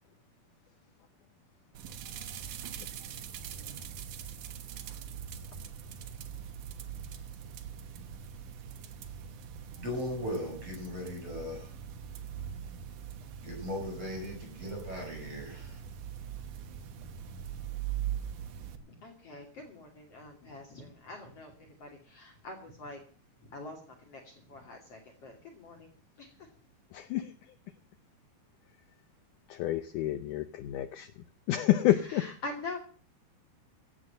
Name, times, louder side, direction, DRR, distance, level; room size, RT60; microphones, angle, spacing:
sound 1, 1.7-18.8, right 9 dB, 65° right, 2.3 m, -42 dB
voice 1, 9.8-11.7 13.4-15.8, left 1 dB, 35° right, 0 dB, 8.5 m, -38 dB
voice 2, 18.8-23.0 23.5-26.3 32.2-32.8, left 2 dB, 40° left, 1 dB, 3.3 m, -45 dB
voice 3, 26.9-27.6 29.5-32.3, left 13 dB, 80° left, 11 dB, 1.8 m, -29 dB
16.0 x 7.7 x 7.8 m, 0.42 s
omnidirectional pair, 4.5 m